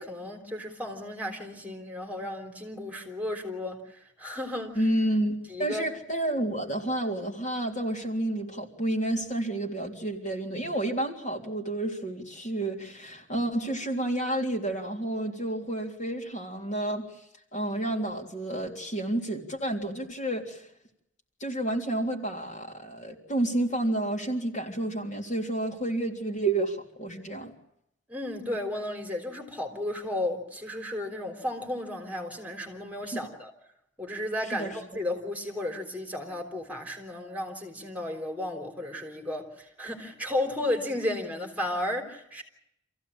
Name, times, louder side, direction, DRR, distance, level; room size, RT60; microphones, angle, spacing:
voice 1, 0.0-4.8 5.5-5.9 28.1-33.5 34.0-42.4, left 1 dB, 10° right, 3.7 m, -34 dB
voice 2, 4.8-17.0 17.5-20.6 21.4-27.5 33.1-33.2 34.5-34.7, right 1 dB, 40° left, 3.5 m, -30 dB
27.0 x 16.0 x 8.7 m
head